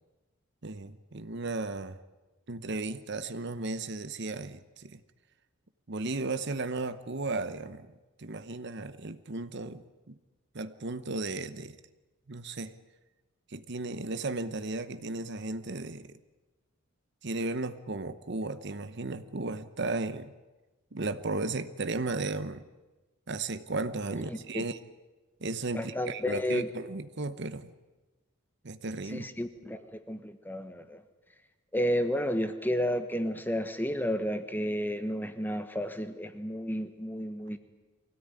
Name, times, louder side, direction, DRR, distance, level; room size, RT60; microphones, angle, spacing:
voice 1, 0.6-2.0 2.5-5.0 5.9-7.9 8.2-10.2 10.5-11.8 12.3-12.7 13.5-16.2 17.2-20.3 20.9-22.6 23.3-24.8 25.4-27.7 28.6-29.3, right 3 dB, 55° right, 12 dB, 0.9 m, -35 dB
voice 2, 24.3-24.6 25.7-26.7 29.1-31.0 31.7-37.6, equal, 10° left, 9 dB, 1.3 m, -32 dB
24.0 x 17.0 x 9.7 m, 1.2 s
head